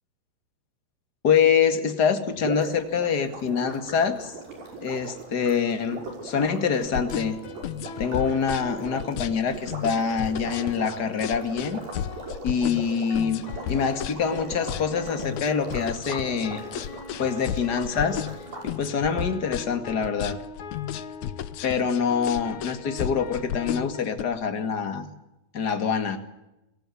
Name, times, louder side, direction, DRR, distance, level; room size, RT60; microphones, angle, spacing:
voice 1, 1.2-4.3 4.8-7.4 8.0-11.8 12.4-16.6 17.2-18.2 18.6-20.4 21.6-25.1 25.5-26.2, left 6 dB, 35° left, 9 dB, 1.7 m, -25 dB
sound 1, 2.3-18.7, right 2 dB, 60° right, 7.5 m, -40 dB
sound 2, 6.3-24.0, left 4 dB, 50° left, 3.2 m, -43 dB
sound 3, 6.8-24.2, left 10 dB, 80° left, 1.6 m, -33 dB
25.5 x 17.5 x 9.9 m, 0.93 s
omnidirectional pair, 4.7 m